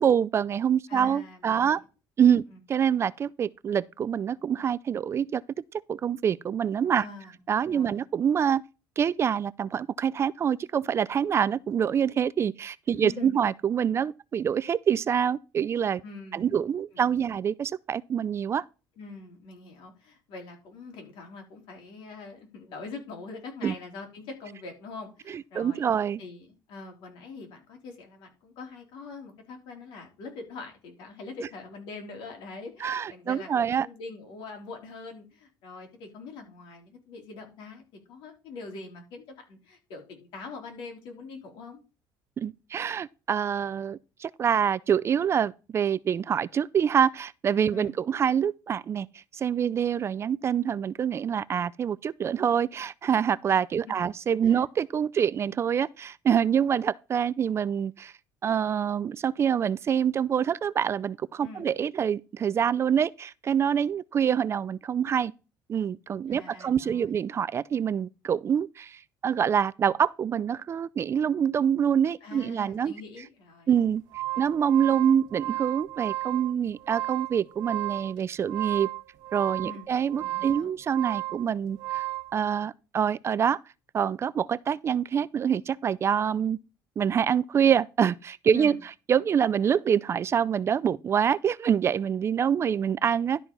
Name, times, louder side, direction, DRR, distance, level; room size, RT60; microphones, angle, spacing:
voice 1, 0.0-1.8 2.2-2.4 2.7-5.4 5.9-7.0 7.5-8.6 9.0-16.0 16.3-18.6 23.6-23.7 25.5-26.2 32.8-33.9 42.4-58.1 58.4-65.3 65.7-72.9 73.7-74.0 74.4-78.9 79.3-82.0 82.3-83.6 83.9-86.6 87.0-88.8 89.1-93.4, right 8 dB, 30° right, 0.4 m, -26 dB
voice 2, 0.9-1.8 2.5-2.6 7.0-7.4 7.7-8.0 12.9-13.4 16.0-16.5 16.9-17.2 19.0-25.9 26.2-41.8 47.7-47.9 54.4-54.6 61.4-61.7 66.3-67.1 72.2-73.7 79.6-79.9 80.2-80.7 88.5-88.8, left 4 dB, 75° left, 3.6 m, -43 dB
sound 1, 73.9-82.3, right 16 dB, 75° right, 1.6 m, -34 dB
12.0 x 4.5 x 5.4 m
cardioid pair, 140°, 8 cm